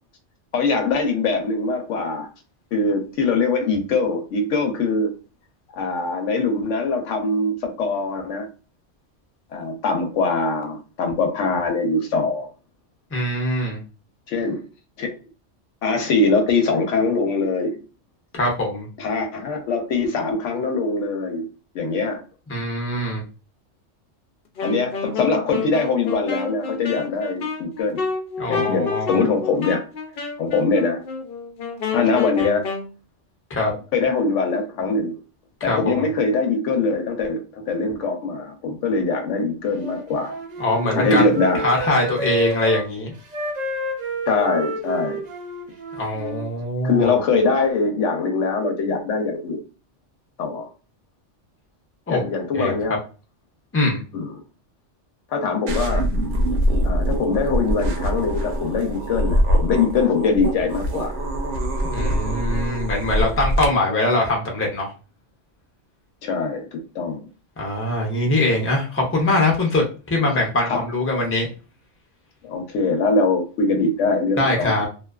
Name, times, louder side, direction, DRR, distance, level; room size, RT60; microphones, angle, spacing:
voice 1, 0.5-2.3 2.7-5.1 5.7-8.5 9.5-12.5 14.3-14.6 15.0-15.1 15.8-17.8 19.0-21.5 21.7-22.2 24.6-28.1 28.5-29.8 30.4-31.0 31.9-32.7 33.9-35.2 35.6-40.4 41.0-41.6 44.3-45.2 46.8-49.6 50.4-50.7 52.1-53.0 54.1-54.4 55.3-56.0 56.8-61.2 66.2-67.3 70.6-70.8 72.4-74.9, left 3 dB, 85° left, 1.0 m, -22 dB
voice 2, 13.1-13.8 18.3-18.9 22.5-23.2 28.4-29.2 33.5-33.7 35.6-36.1 40.6-41.3 41.6-43.1 46.0-47.1 52.1-52.2 52.5-52.7 53.7-54.0 61.9-64.9 67.6-71.5 74.4-74.9, left 2 dB, 15° left, 0.5 m, -22 dB
Wind instrument woodwind instrument, 24.6-32.9, left 4 dB, 60° left, 0.6 m, -29 dB
Wind instrument woodwind instrument 2, 39.7-42.8 43.3-46.5, right 1 dB, 55° right, 0.5 m, -30 dB
sound 1, 55.7-63.7, equal, 75° right, 0.9 m, -23 dB
2.5 x 2.3 x 2.2 m
omnidirectional pair, 1.2 m